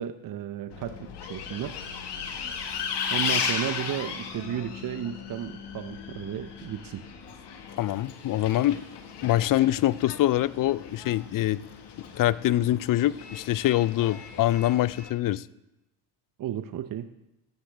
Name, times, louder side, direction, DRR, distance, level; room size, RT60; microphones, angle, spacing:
voice 1, 0.0-1.8 3.1-7.0 16.4-17.1, right 10 dB, 45° right, 10 dB, 0.8 m, -33 dB
Bus, 0.7-15.1, left 6 dB, 60° left, 1.9 m, -36 dB
voice 2, 7.8-8.9 9.2-11.6 12.0-15.5, left 14 dB, 45° left, 19 dB, 0.5 m, -24 dB
15.0 x 12.0 x 3.4 m, 0.97 s
hypercardioid pair, 65°, 46 cm